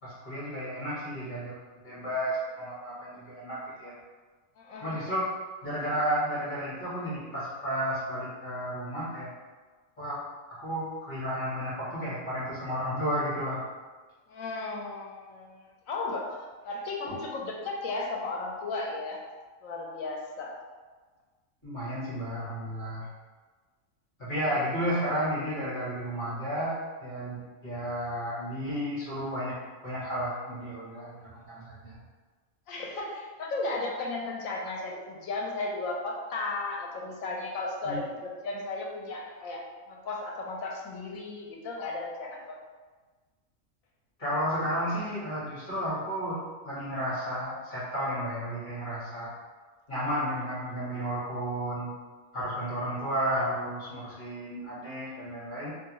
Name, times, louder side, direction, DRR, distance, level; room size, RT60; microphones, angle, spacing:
voice 1, 0.0-1.6 1.8-4.0 4.8-5.4 5.6-9.3 10.0-10.2 10.6-13.6 21.6-23.1 24.2-29.6 29.8-32.0 37.8-38.0 44.2-49.3 49.9-51.9 52.3-55.7, equal, 35° left, -9 dB, 1.6 m, -32 dB
voice 2, 4.6-5.1 14.3-15.6 15.9-16.4 16.7-19.2 19.6-20.5 32.7-39.6 39.9-42.6, left 3 dB, 85° left, -1 dB, 1.1 m, -35 dB
3.6 x 2.7 x 2.9 m, 1.4 s
omnidirectional pair, 1.4 m